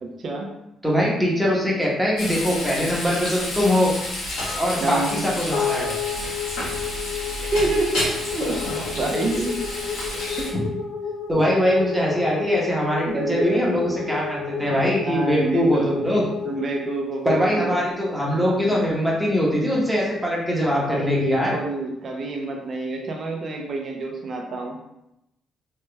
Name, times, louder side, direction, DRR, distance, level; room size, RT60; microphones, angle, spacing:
voice 1, 0.0-0.5 4.8-5.2 6.8-6.9 7.4-9.6 10.4-10.5 13.1-14.0 15.1-16.0 16.4-17.8 20.7-24.8, right 2 dB, 50° right, 1 dB, 0.6 m, -28 dB
voice 2, 0.8-3.9 4.6-6.0 10.5-10.6 11.3-16.3 17.2-21.6, equal, 5° right, -4 dB, 1.0 m, -22 dB
Frying (food), 2.2-10.5, left 1 dB, 90° left, 1.1 m, -30 dB
sound 1, 5.5-18.0, left 6 dB, 70° left, 0.7 m, -32 dB
3.2 x 3.1 x 2.2 m, 0.86 s
cardioid pair, 90°, 0 cm